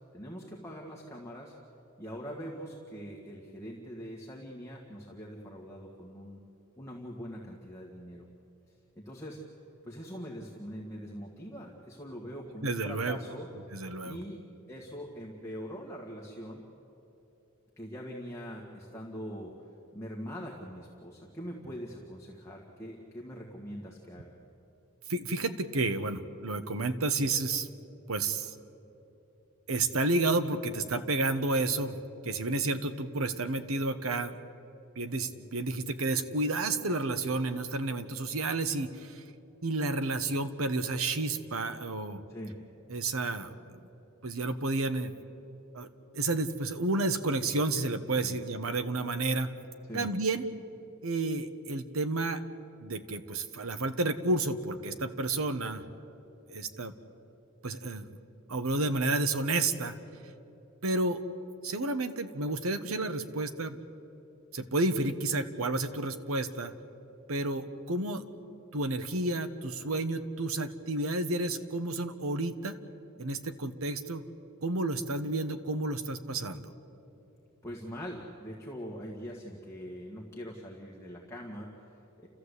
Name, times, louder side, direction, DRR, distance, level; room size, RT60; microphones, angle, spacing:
voice 1, 0.1-1.5 2.0-6.4 6.8-8.3 9.0-9.4 9.8-13.5 14.0-14.4 14.7-16.6 17.8-19.5 19.9-24.4 42.3-42.6 48.2-48.4 49.8-50.1 77.6-82.3, equal, 15° left, -3 dB, 1.9 m, -42 dB
voice 2, 12.6-13.2 13.7-14.2 25.1-27.7 28.1-28.5 29.7-32.0 32.2-34.4 35.0-39.2 39.6-42.2 42.9-43.8 44.2-45.1 45.7-45.9 46.1-49.5 49.9-50.4 51.0-52.4 52.8-55.8 56.5-56.9 57.6-58.1 58.5-59.9 60.8-61.2 61.6-63.8 64.5-66.7 67.3-68.2 68.7-72.8 73.2-74.2 74.6-76.6, right 2 dB, 80° right, 9 dB, 1.2 m, -31 dB
30.0 x 14.0 x 8.3 m, 3.0 s
head